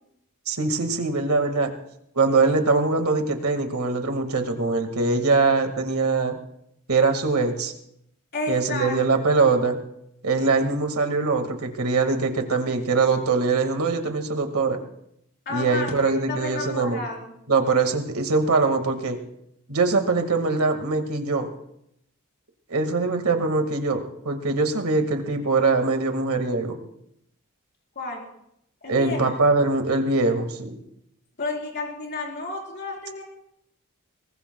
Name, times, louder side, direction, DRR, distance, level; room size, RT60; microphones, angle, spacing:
voice 1, 0.5-1.7 2.2-6.4 6.9-7.7 8.5-9.8 10.2-14.8 15.5-17.0 17.5-19.2 19.7-21.5 22.7-26.8 28.9-30.8, right 3 dB, 70° right, 6 dB, 1.9 m, -22 dB
voice 2, 8.3-9.0 15.5-17.3 28.0-28.2 28.8-29.4 31.4-33.2, left 3 dB, 50° left, -1 dB, 4.0 m, -31 dB
23.0 x 19.5 x 2.3 m, 0.76 s
head